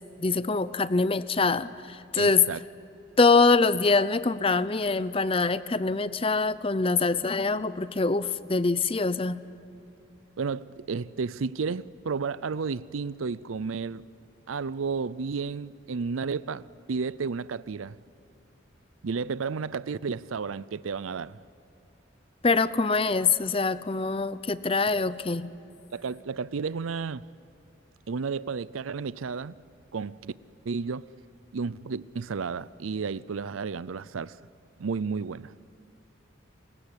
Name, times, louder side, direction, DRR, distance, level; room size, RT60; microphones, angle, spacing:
voice 1, 0.2-2.5 3.2-9.4 22.4-25.5, left 4 dB, 25° left, 0.6 m, -24 dB
voice 2, 2.1-2.6 10.4-14.0 14.5-18.0 19.0-21.4 25.9-27.3 28.1-29.5 29.9-30.3 30.7-31.1 31.5-34.4 34.8-35.5, right 5 dB, 90° right, 0.5 m, -32 dB
28.5 x 17.0 x 9.9 m
head